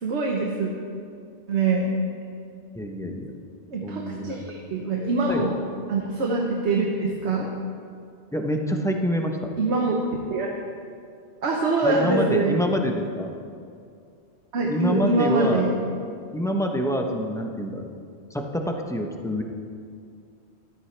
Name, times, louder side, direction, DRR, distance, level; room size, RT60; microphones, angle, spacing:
voice 1, 0.0-0.7 1.5-2.0 3.7-5.6 5.9-7.5 9.6-10.0 10.3-10.5 11.4-12.7 14.5-15.8, right 3 dB, 75° right, -1 dB, 1.3 m, -24 dB
voice 2, 2.7-3.3 3.8-4.4 5.3-5.5 8.3-9.5 11.8-13.3 14.7-15.6 16.3-17.9 18.3-19.4, equal, 5° left, 2 dB, 0.7 m, -26 dB
14.0 x 13.0 x 3.3 m, 2.4 s
omnidirectional pair, 1.2 m